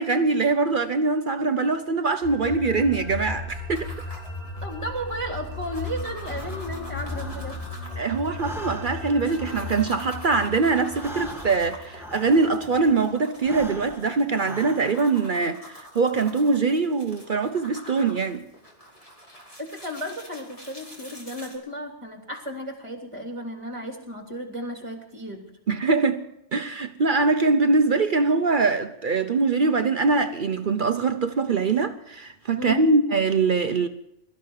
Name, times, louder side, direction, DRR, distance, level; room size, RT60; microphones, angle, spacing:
voice 1, 0.0-3.9 8.0-18.4 25.7-26.2 26.5-33.9, right 4 dB, 50° right, 0.9 m, -23 dB
sound 1, 2.2-13.0, left 2 dB, 65° left, 3.4 m, -36 dB
sound 2, 3.7-21.6, equal, 30° left, 3.1 m, -46 dB
voice 2, 4.6-7.6 19.6-25.4 32.6-32.9, equal, 25° right, 3.1 m, -34 dB
Breathing, 6.2-7.9 8.2-12.8 13.3-15.2, equal, ahead, 1.5 m, -42 dB
22.5 x 13.5 x 4.8 m
omnidirectional pair, 1.2 m